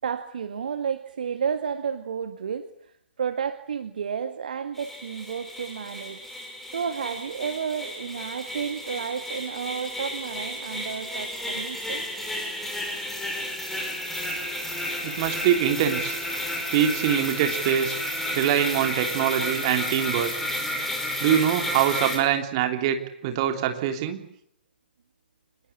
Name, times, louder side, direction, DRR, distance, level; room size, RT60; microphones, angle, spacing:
voice 1, 0.0-2.7 3.2-6.2 6.7-12.1, right 7 dB, 50° right, 9 dB, 1.9 m, -31 dB
sound 1, 4.7-22.2, left 1 dB, 5° left, 5.4 m, -32 dB
voice 2, 15.0-16.2 16.7-18.0 18.3-20.3 21.2-24.2, right 10 dB, 30° right, 6 dB, 3.4 m, -24 dB
25.5 x 21.0 x 9.8 m, 0.71 s
figure-of-eight pair, 125°, 6 cm